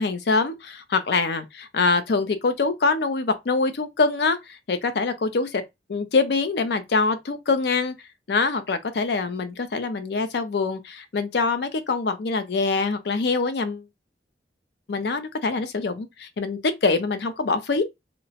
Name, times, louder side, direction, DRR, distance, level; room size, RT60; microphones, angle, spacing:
voice 1, 0.0-5.6 5.9-7.9 8.3-13.8 14.9-17.8, left 4 dB, 65° left, 0.5 m, -24 dB
2.9 x 2.1 x 2.7 m
head